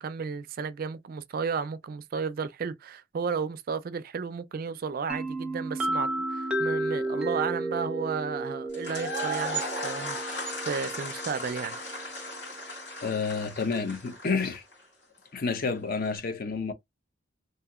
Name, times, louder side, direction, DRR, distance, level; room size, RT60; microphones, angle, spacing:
voice 1, 0.0-11.8, right 5 dB, 50° right, 0.3 m, -33 dB
sound 1, 5.1-12.7, right 1 dB, 5° right, 0.7 m, -33 dB
sound 2, 8.7-14.7, equal, 70° left, 1.8 m, -35 dB
voice 2, 13.0-14.6 15.3-16.7, left 4 dB, 50° left, 0.6 m, -29 dB
2.8 x 2.7 x 2.3 m
head